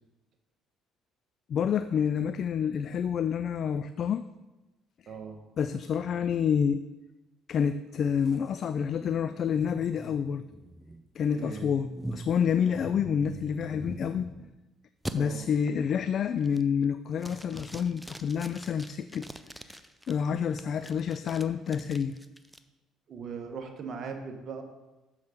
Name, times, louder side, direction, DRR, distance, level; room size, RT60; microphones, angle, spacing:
voice 1, 1.5-4.2 5.6-6.8 7.5-10.4 11.2-14.3 15.1-19.3 20.1-22.2, left 7 dB, 55° left, 12 dB, 0.3 m, -28 dB
voice 2, 5.1-5.4 11.3-11.7 15.2-15.5 23.1-24.6, right 5 dB, 50° right, 4 dB, 1.3 m, -39 dB
sound 1, 8.2-14.6 15.1-15.2 15.7-16.0 16.4-16.8 17.2-20.1 20.6-22.6, right 1 dB, 5° right, 0.6 m, -43 dB
7.0 x 6.3 x 5.0 m, 1.1 s
supercardioid pair, 75°, 0 cm